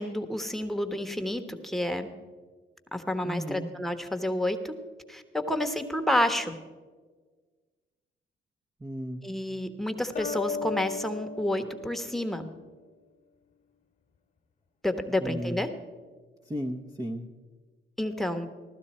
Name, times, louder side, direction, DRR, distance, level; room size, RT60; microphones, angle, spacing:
voice 1, 0.0-2.1 2.9-4.7 5.1-6.6 9.2-12.5 14.8-15.7 18.0-18.5, left 1 dB, ahead, 5 dB, 1.1 m, -29 dB
voice 2, 3.2-3.7 8.8-9.2 15.2-15.6 16.5-17.3, equal, 20° right, 2 dB, 0.9 m, -34 dB
sound 1, 10.2-12.8, left 4 dB, 40° left, 1.2 m, -37 dB
16.0 x 12.0 x 4.3 m, 1.4 s
cardioid pair, 90°, 20 cm